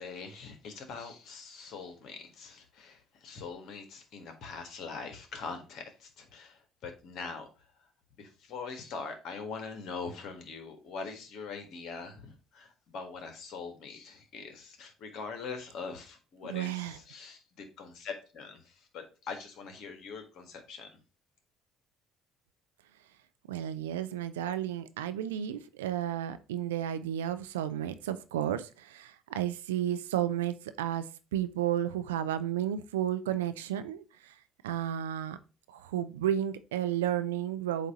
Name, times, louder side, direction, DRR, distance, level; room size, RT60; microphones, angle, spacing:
voice 1, 0.0-7.5 8.2-21.0, left 5 dB, 60° left, 5 dB, 1.5 m, -43 dB
voice 2, 16.5-17.0 23.5-31.1 31.3-34.3 34.6-35.4 35.7-37.9, right 11 dB, 85° right, 11 dB, 0.4 m, -32 dB
8.1 x 2.7 x 4.7 m, 0.33 s
hypercardioid pair, 55°, 0 cm